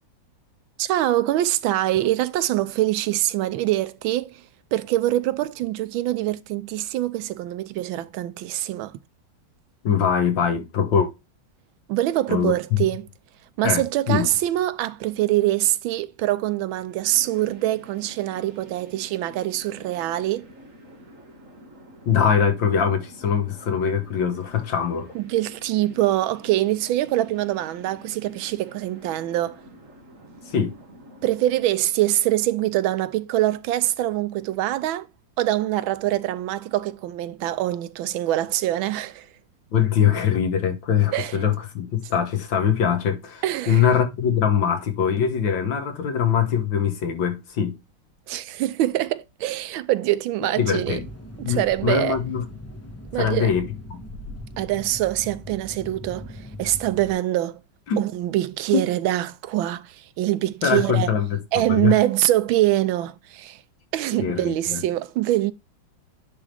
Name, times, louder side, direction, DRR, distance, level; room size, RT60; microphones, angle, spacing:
voice 1, 0.8-4.4 4.7-9.0 11.9-13.1 13.6-20.5 25.1-29.6 31.2-35.1 35.4-39.3 41.1-41.4 43.4-43.8 48.3-51.0 51.4-52.2 53.1-53.5 54.6-57.6 58.0-61.1 61.5-63.6 63.9-65.5, right 14 dB, 80° right, 1.4 m, -24 dB
voice 2, 9.8-11.1 12.3-12.5 13.6-14.3 22.1-25.1 30.5-30.7 39.7-47.8 50.6-51.0 51.4-52.5 53.2-53.6 53.9-54.0 57.9-58.0 58.7-58.9 60.6-62.0 64.2-64.8, left 8 dB, 70° left, 2.0 m, -22 dB
sound 1, 16.7-31.7, equal, 40° right, 2.1 m, -48 dB
sound 2, 50.8-57.1, left 1 dB, 10° left, 0.9 m, -40 dB
10.5 x 3.6 x 3.3 m
omnidirectional pair, 2.2 m